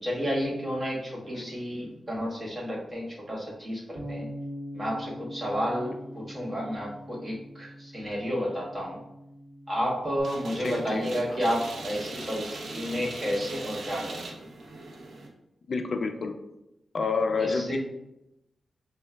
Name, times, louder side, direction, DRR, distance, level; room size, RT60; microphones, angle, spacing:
voice 1, 0.0-4.3 4.7-9.0 9.7-14.4 17.4-17.8, equal, 20° right, -4 dB, 1.4 m, -31 dB
Bass guitar, 4.0-10.2, equal, 55° right, 1.1 m, -42 dB
sound 1, 10.2-15.3, right 2 dB, 75° right, 0.7 m, -39 dB
voice 2, 10.6-11.1 15.7-16.4 16.9-17.8, left 4 dB, 55° left, 6 dB, 0.3 m, -28 dB
6.3 x 2.2 x 2.3 m, 0.87 s
cardioid pair, 80°, 0 cm